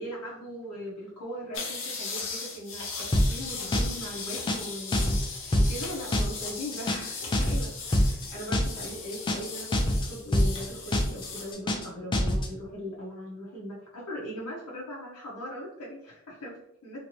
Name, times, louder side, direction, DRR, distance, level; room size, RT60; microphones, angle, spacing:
voice 1, 0.0-5.2 5.6-17.0, equal, 90° left, -5 dB, 0.8 m, -39 dB
sound 1, 1.5-11.5, left 4 dB, 60° left, 0.8 m, -38 dB
sound 2, 3.1-3.5 3.7-4.1 4.3-4.7 4.9-5.3 5.5-5.9 6.1-6.5 6.7-7.1 7.3-7.7 7.9-8.3 8.5-8.9 9.1-9.5 9.7-10.1 10.3-10.7 10.9-11.3 11.5-11.9 12.1-12.5, left 1 dB, 20° left, 0.4 m, -24 dB
3.0 x 2.7 x 2.9 m, 0.77 s
head